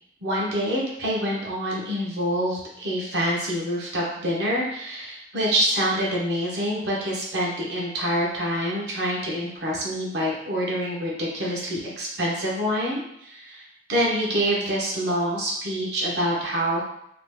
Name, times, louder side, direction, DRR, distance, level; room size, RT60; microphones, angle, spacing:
voice 1, 0.2-13.6 13.9-16.8, equal, 70° right, -4 dB, 0.8 m, -26 dB
2.9 x 2.1 x 3.2 m, 0.76 s
head